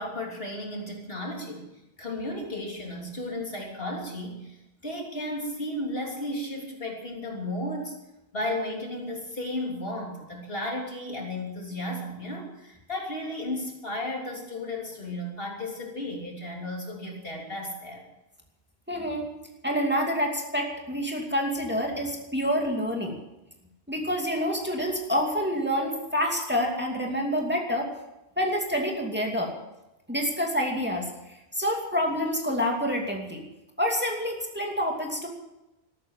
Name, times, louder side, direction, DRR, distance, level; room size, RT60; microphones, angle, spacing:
voice 1, 0.0-1.7 2.0-4.6 4.8-7.9 8.3-18.0, left 1 dB, 65° left, 0 dB, 3.6 m, -34 dB
voice 2, 18.9-19.3 19.6-23.2 23.9-27.9 28.4-29.5 30.1-31.1 31.6-33.4 33.8-35.3, equal, 10° right, 0 dB, 2.5 m, -27 dB
13.5 x 13.0 x 7.3 m, 0.94 s
omnidirectional pair, 1.0 m